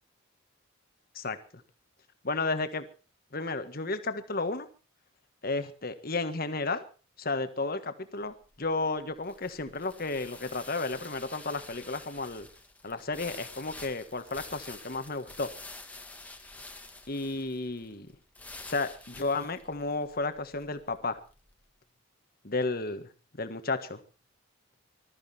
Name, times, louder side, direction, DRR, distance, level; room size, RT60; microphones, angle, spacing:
voice 1, 2.2-2.8 3.3-4.7 5.4-6.8 7.2-12.5 12.8-15.5 17.1-18.1 18.6-21.2 22.4-23.1 23.4-24.0, left 3 dB, 45° left, 9 dB, 1.5 m, -32 dB
sound 1, 8.3-21.5, left 2 dB, 5° left, 1.4 m, -48 dB
20.0 x 13.5 x 4.3 m, 0.35 s
head